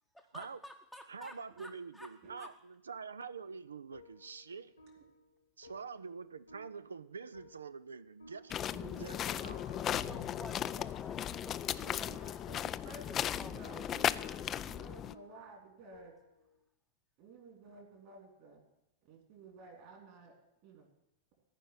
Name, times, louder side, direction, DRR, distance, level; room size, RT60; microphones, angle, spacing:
voice 1, 0.1-2.5 10.0-12.1 12.9-14.1, equal, ahead, 3 dB, 0.8 m, -52 dB
voice 2, 1.1-4.7 5.6-9.7, right 5 dB, 75° right, 16 dB, 0.4 m, -46 dB
sound 1, 3.4-16.6, left 2 dB, 80° left, 1.6 m, -57 dB
sound 2, 8.5-15.1, left 10 dB, 30° left, 0.3 m, -36 dB
voice 3, 8.7-9.2 11.8-12.6 12.8-16.1 17.2-18.6 19.0-20.4 20.6-20.9, right 4 dB, 45° right, 2 dB, 3.2 m, -53 dB
sound 3, 10.1-14.5, left 10 dB, 55° left, 0.7 m, -62 dB
14.5 x 5.2 x 9.1 m, 0.88 s
figure-of-eight pair, 90°, 0 cm